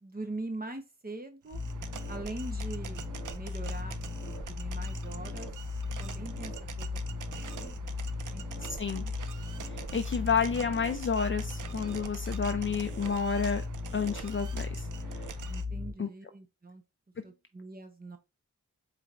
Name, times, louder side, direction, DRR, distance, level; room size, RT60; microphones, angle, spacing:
voice 1, 0.0-1.6 2.1-3.0 3.3-4.0 4.2-5.5 6.0-9.1 10.1-10.8 15.5-16.8 17.2-18.2, right 2 dB, 30° right, 0.9 m, -43 dB
sound 1, 1.5-15.9, left 3 dB, 10° right, 2.1 m, -37 dB
sound 2, 1.5-15.6, right 8 dB, 85° right, 0.5 m, -46 dB
voice 2, 9.7-13.6 13.9-14.9 16.0-16.1, left 6 dB, 40° left, 0.4 m, -30 dB
4.5 x 3.4 x 2.5 m
wide cardioid pair, 70°, 30 cm